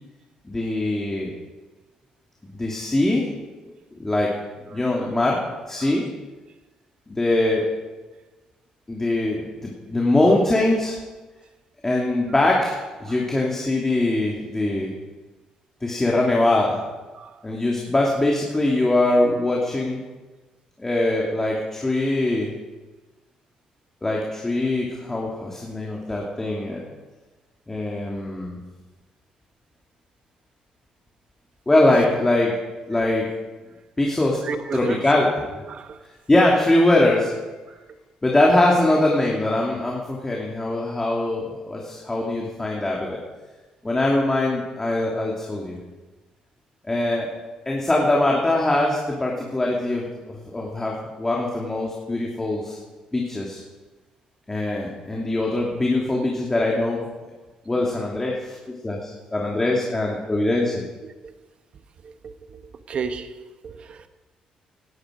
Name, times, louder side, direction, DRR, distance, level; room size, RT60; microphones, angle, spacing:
voice 1, 0.4-1.3 2.5-3.3 4.0-4.3 4.7-5.4 5.7-6.0 7.1-7.7 8.9-11.0 11.8-14.9 15.8-16.8 17.4-20.0 20.8-22.5 24.0-26.8 27.7-28.6 31.7-32.6 32.9-33.3 34.0-34.4 34.7-35.5 36.3-37.3 38.2-43.2 43.8-45.8 46.9-47.3 47.7-52.8 53.1-53.6 54.5-57.0 57.7-58.6 58.8-60.8, left 2 dB, 15° left, 2.8 m, -22 dB
voice 2, 34.4-35.1 35.7-36.0 37.7-37.8 61.0-61.3 62.0-64.1, right 5 dB, 55° right, 1.3 m, -34 dB
17.5 x 11.5 x 5.2 m
cardioid pair, 90°, 2 cm